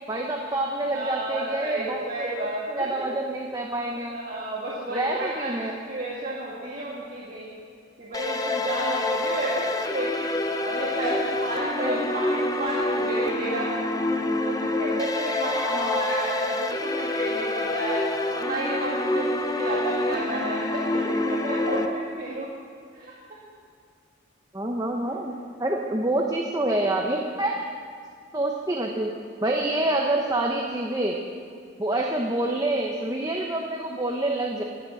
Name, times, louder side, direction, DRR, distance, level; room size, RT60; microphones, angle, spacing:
voice 1, 0.1-4.2 4.9-5.8 11.0-11.2 11.8-12.0 15.6-16.0 24.5-25.3 25.6-27.5 28.3-29.1 29.4-31.2 31.8-34.6, right 1 dB, 15° right, 0 dB, 0.8 m, -27 dB
voice 2, 0.9-3.1 4.1-7.5 8.0-10.3 10.6-13.7 14.4-18.0 18.3-22.5 22.9-23.1, right 1 dB, 40° right, -6 dB, 1.9 m, -32 dB
sound 1, 8.1-21.9, left 2 dB, 20° left, 0.6 m, -27 dB
19.0 x 7.3 x 7.8 m, 2.1 s
head